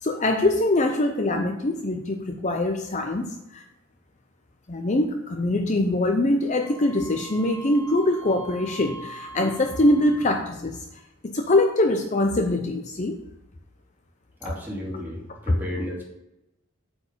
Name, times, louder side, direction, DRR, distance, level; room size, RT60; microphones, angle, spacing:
voice 1, 0.0-3.6 4.7-13.2, left 1 dB, 35° left, 4 dB, 0.6 m, -23 dB
Wind instrument woodwind instrument, 6.6-10.5, right 2 dB, 35° right, 1.6 m, -42 dB
voice 2, 14.4-16.0, left 1 dB, 10° right, -5 dB, 2.7 m, -33 dB
8.2 x 4.8 x 6.6 m, 0.91 s
head